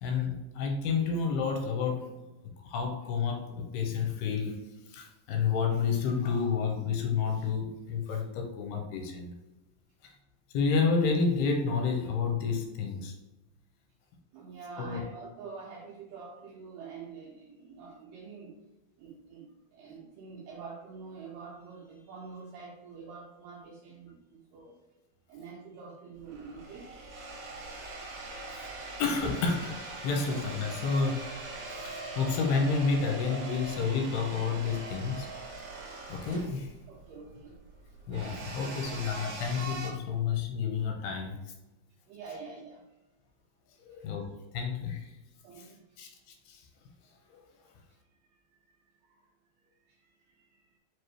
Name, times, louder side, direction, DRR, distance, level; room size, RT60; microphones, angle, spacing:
voice 1, 0.0-2.1 2.6-9.3 10.0-10.1 10.5-13.1 14.8-15.0 28.5-28.7 29.0-31.3 31.8-35.3 35.9-36.7 38.1-41.4 43.8-45.1 45.6-45.7 46.0-46.1 46.5-46.7 47.3-47.4, left 5 dB, 85° left, 2 dB, 2.5 m, -30 dB
voice 2, 14.3-18.6 19.0-24.8 25.3-27.0 31.9-32.1 36.9-37.6 42.1-42.8 43.9-44.1 45.4-45.8 47.9-48.0 49.0-49.2 49.8-50.7, right 5 dB, 85° right, -2 dB, 1.9 m, -46 dB
sound 1, 26.2-39.9, right 3 dB, 60° right, 2.1 m, -42 dB
6.1 x 2.6 x 3.1 m, 1.0 s
omnidirectional pair, 4.5 m